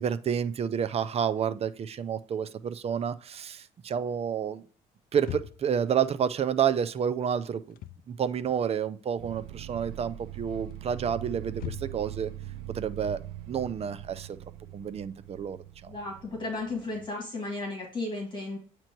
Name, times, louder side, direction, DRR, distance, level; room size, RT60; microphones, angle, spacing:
voice 1, 0.0-4.6 5.1-7.8 8.1-12.3 12.7-13.2 13.5-14.4 14.7-15.9, right 8 dB, 40° right, 12 dB, 0.6 m, -29 dB
sound 1, 5.2-5.8 7.6-8.1 8.4-9.3 9.6-10.0 10.7-12.2, left 13 dB, 60° left, 0.4 m, -41 dB
sound 2, 9.2-17.1, right 13 dB, 85° right, 0.4 m, -42 dB
voice 2, 15.9-18.6, left 2 dB, 30° left, 0 dB, 2.1 m, -34 dB
8.9 x 3.0 x 4.5 m, 0.42 s
cardioid pair, 110°, 17 cm